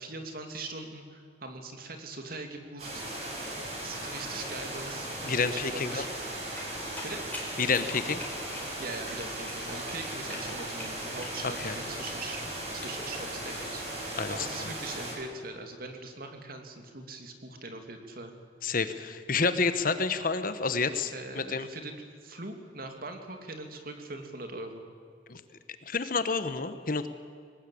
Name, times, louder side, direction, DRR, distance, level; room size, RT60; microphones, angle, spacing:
voice 1, 0.0-3.0 3.8-5.1 5.4-6.1 7.0-7.2 8.8-18.3 21.1-24.8, right 2 dB, 55° right, 5 dB, 2.8 m, -41 dB
sound 1, 2.8-15.1, right 1 dB, 35° right, 6.9 m, -37 dB
voice 2, 5.2-6.0 7.6-8.2 11.4-11.7 14.2-14.7 18.6-21.7 25.3-25.4 25.8-27.1, left 4 dB, 50° left, 11 dB, 1.3 m, -29 dB
sound 2, 6.5-13.7, left 2 dB, 10° left, 5.0 m, -44 dB
22.5 x 19.0 x 8.7 m, 2.2 s
head